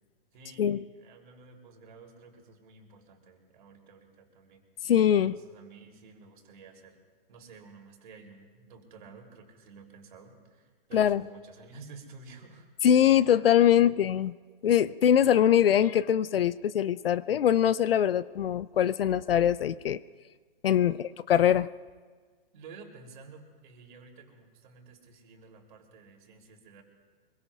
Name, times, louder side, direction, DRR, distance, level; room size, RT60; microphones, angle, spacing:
voice 1, 0.3-4.9 5.3-7.0 7.3-12.7 13.7-13.9 20.9-21.1 22.5-26.8, right 4 dB, 55° right, 1 dB, 3.3 m, -52 dB
voice 2, 4.8-5.4 10.9-11.2 12.8-14.3 14.6-20.0 20.6-21.7, left 10 dB, 70° left, 17 dB, 0.6 m, -23 dB
25.0 x 22.5 x 2.4 m, 1.5 s
hypercardioid pair, 140°, 30 cm